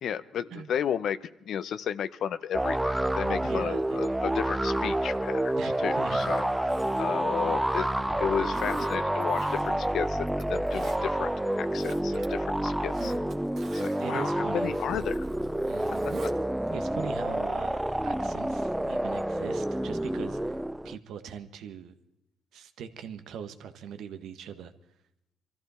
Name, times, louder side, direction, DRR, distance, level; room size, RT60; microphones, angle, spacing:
voice 1, 0.0-5.5 5.8-6.5 7.0-7.9 8.2-11.3 11.6-13.1 13.7-15.2 16.2-16.3, left 8 dB, 70° left, 13 dB, 0.8 m, -33 dB
sound 1, 2.5-21.0, right 1 dB, 5° right, 0.5 m, -29 dB
voice 2, 3.4-4.0 5.6-6.2 7.4-7.6 9.6-9.9 12.1-12.4 14.0-14.7 15.7-16.0 16.7-20.6 20.8-21.9 22.5-24.7, right 7 dB, 80° right, 10 dB, 1.3 m, -41 dB
Zipper (clothing), 6.0-7.9 8.5-9.9 10.3-11.0 11.5-12.3 12.6-16.4 16.7-16.8, right 5 dB, 60° right, 2.2 m, -45 dB
24.0 x 14.0 x 4.3 m, 0.82 s
cardioid pair, 90°, 0 cm